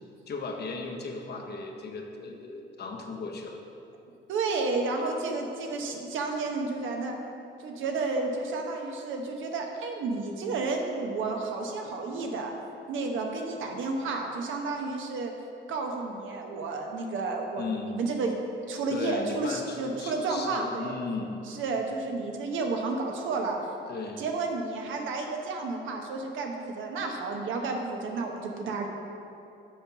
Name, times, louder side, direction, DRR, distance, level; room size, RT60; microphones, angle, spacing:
voice 1, 0.3-3.6 17.6-18.0 18.9-21.4 23.9-24.3, left 4 dB, 55° left, 2 dB, 0.9 m, -36 dB
voice 2, 4.3-7.2 7.6-12.5 12.9-15.3 15.7-17.6 17.9-18.4 18.7-21.0 21.5-23.6 24.2-28.9, right 3 dB, 80° right, 2 dB, 0.9 m, -31 dB
7.6 x 3.9 x 5.7 m, 2.7 s
cardioid pair, 90°, 20 cm